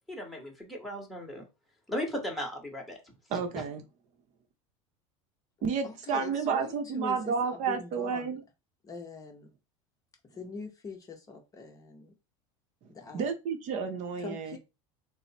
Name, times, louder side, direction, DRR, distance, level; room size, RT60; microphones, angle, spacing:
voice 1, 0.1-1.5 1.9-3.0, equal, ahead, 1.1 m, -36 dB
voice 2, 3.3-3.8 5.6-8.4 13.1-14.6, right 6 dB, 50° right, 0.8 m, -31 dB
voice 3, 5.8-8.4 8.8-9.5 10.3-12.1 12.9-13.3 14.2-14.6, left 4 dB, 20° left, 0.7 m, -43 dB
3.1 x 2.0 x 4.1 m
supercardioid pair, 120°, 16 cm